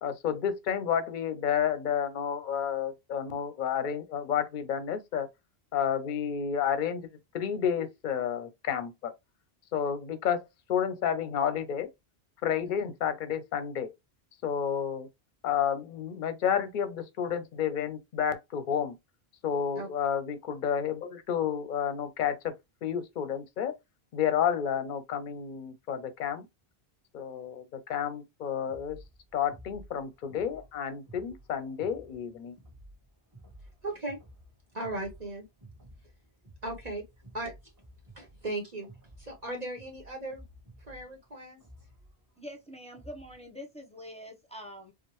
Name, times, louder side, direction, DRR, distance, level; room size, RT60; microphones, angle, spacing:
voice 1, 0.0-5.3 5.7-9.1 9.7-11.9 12.4-13.9 14.4-15.1 15.4-19.0 19.4-22.5 22.8-23.7 24.1-26.5 27.1-29.0 29.3-32.5, left 8 dB, 55° left, 0.7 m, -30 dB
sound 1, 28.7-43.4, right 1 dB, 20° right, 1.1 m, -54 dB
voice 2, 33.8-34.2 34.7-35.4 36.6-37.0 37.3-37.5 38.1-38.9 39.2-40.4 40.8-41.6, right 2 dB, 45° right, 0.9 m, -37 dB
voice 3, 42.4-44.9, equal, 5° left, 0.7 m, -45 dB
4.5 x 2.0 x 3.0 m
omnidirectional pair, 1.1 m